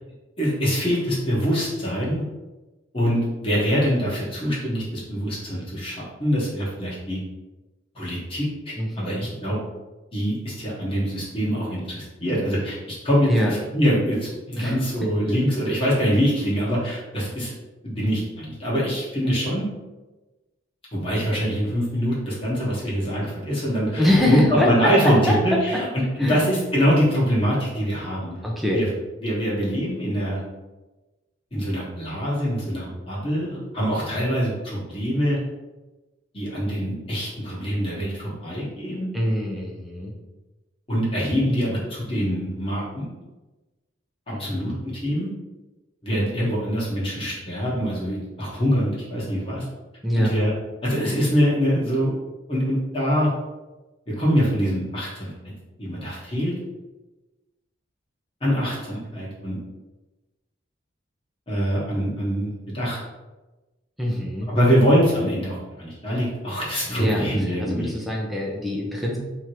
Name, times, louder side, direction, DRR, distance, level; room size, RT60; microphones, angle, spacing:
voice 1, 0.4-2.2 2.9-7.2 7.9-9.6 10.1-17.5 17.8-19.7 20.9-28.4 28.7-28.9 29.2-30.4 31.5-35.4 36.3-39.1 40.9-43.1 44.4-45.3 46.0-49.6 50.1-50.5 50.8-52.1 52.5-53.3 54.1-55.3 55.8-56.5 58.4-59.6 61.5-63.0 64.5-67.9, equal, 30° left, -7 dB, 1.2 m, -24 dB
voice 2, 8.8-9.3 13.3-13.5 14.5-14.7 23.9-24.9 25.3-25.4 26.2-26.4 28.4-28.8 39.1-40.1 44.3-44.8 50.0-50.3 64.0-64.5 66.9-69.2, left 1 dB, ahead, -3 dB, 0.7 m, -24 dB
3.6 x 3.0 x 4.7 m, 1.1 s
head